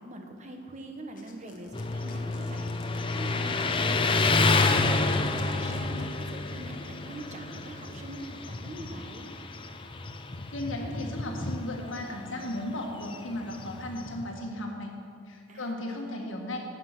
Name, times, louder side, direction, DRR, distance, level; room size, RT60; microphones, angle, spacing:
voice 1, 0.0-4.3 4.5-9.3 15.5-16.3, right 1 dB, 35° right, 3 dB, 1.1 m, -43 dB
sound 1, 1.2-6.6, left 1 dB, 40° left, 1.3 m, -47 dB
Motorcycle, 1.7-14.4, left 3 dB, 25° left, 0.5 m, -29 dB
voice 2, 10.5-15.0 15.2-16.6, left 1 dB, 70° left, 1 dB, 1.7 m, -35 dB
12.0 x 7.8 x 5.9 m, 2.3 s
head